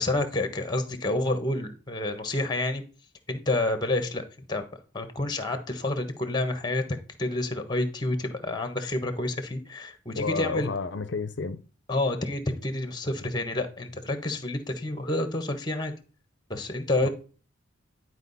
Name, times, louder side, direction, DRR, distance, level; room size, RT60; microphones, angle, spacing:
voice 1, 0.0-2.8 3.3-4.6 4.9-6.8 7.2-10.7 11.9-15.9 16.5-17.1, left 2 dB, 20° left, 1.2 m, -29 dB
voice 2, 10.2-11.6 17.0-17.1, left 4 dB, 60° left, 0.6 m, -30 dB
10.5 x 4.8 x 4.1 m
head